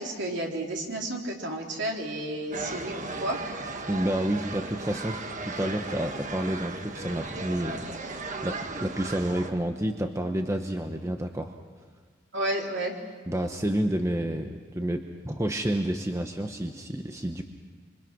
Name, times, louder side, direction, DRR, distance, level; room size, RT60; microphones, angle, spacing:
voice 1, 0.0-3.4 12.3-12.9, right 1 dB, 60° right, 0 dB, 3.6 m, -31 dB
sound 1, 2.5-9.5, right 3 dB, 40° right, 1.5 m, -36 dB
voice 2, 3.9-11.5 13.3-17.4, right 1 dB, 15° right, 4 dB, 0.9 m, -30 dB
26.5 x 26.0 x 6.1 m, 1.5 s
head